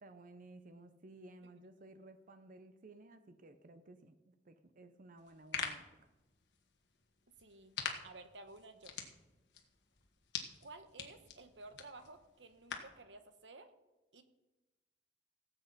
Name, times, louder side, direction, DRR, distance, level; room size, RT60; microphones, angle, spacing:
voice 1, 0.0-6.1, right 2 dB, 50° right, 9 dB, 0.7 m, -56 dB
sound 1, 5.2-13.0, left 6 dB, 75° left, 1.5 m, -46 dB
voice 2, 7.4-7.8 8.0-9.0 10.6-13.7 14.1-14.2, right 2 dB, 85° right, 9 dB, 1.2 m, -54 dB
17.5 x 8.2 x 4.1 m, 1.1 s
head